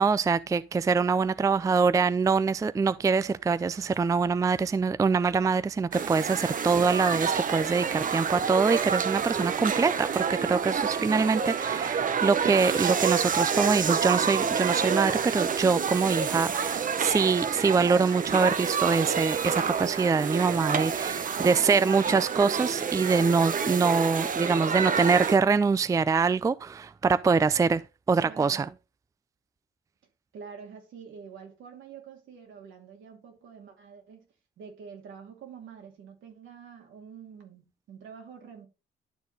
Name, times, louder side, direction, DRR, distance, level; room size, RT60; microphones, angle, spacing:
voice 1, 0.0-27.8 28.1-28.7, right 5 dB, 15° right, 0.4 m, -24 dB
sound 1, 5.9-25.4, right 6 dB, 40° right, 0.9 m, -28 dB
voice 2, 28.2-28.8 30.3-34.3 34.6-38.7, right 6 dB, 75° right, 2.8 m, -47 dB
11.5 x 4.1 x 4.0 m
cardioid pair, 90°, 20 cm